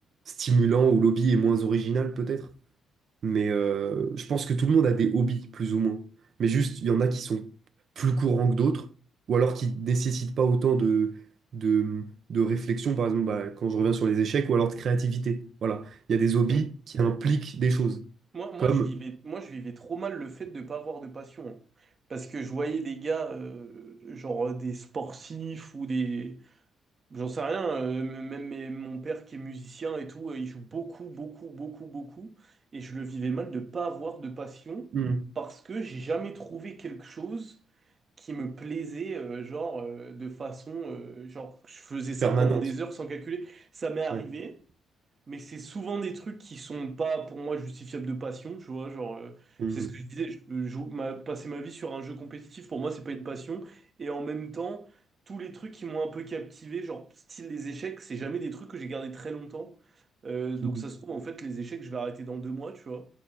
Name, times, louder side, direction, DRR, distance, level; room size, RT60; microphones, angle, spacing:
voice 1, 0.4-2.5 3.2-6.1 6.4-7.5 8.0-8.9 9.3-11.2 11.5-18.1 18.6-18.9 34.9-35.2 42.2-42.6 44.1-44.2 49.6-49.9 60.6-60.8, right 5 dB, 60° right, 0.9 m, -25 dB
voice 2, 18.3-21.6 22.1-26.4 27.1-32.3 32.7-34.9 35.4-37.6 38.2-44.6 45.3-49.4 49.7-54.9 55.3-59.7 60.2-63.1, right 4 dB, 40° right, 1.2 m, -35 dB
9.1 x 4.6 x 4.3 m
cardioid pair, 90°, 0 cm